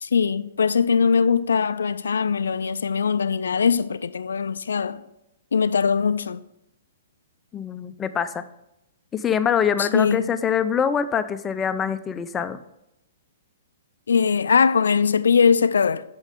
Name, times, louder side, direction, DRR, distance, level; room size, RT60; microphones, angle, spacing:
voice 1, 0.0-5.0 5.5-6.4 9.8-10.2 14.1-16.0, left 6 dB, 75° left, 0.4 m, -21 dB
voice 2, 7.5-8.4 9.1-12.6, left 7 dB, 20° left, 0.5 m, -24 dB
8.9 x 6.2 x 3.7 m
figure-of-eight pair, 120°, 0 cm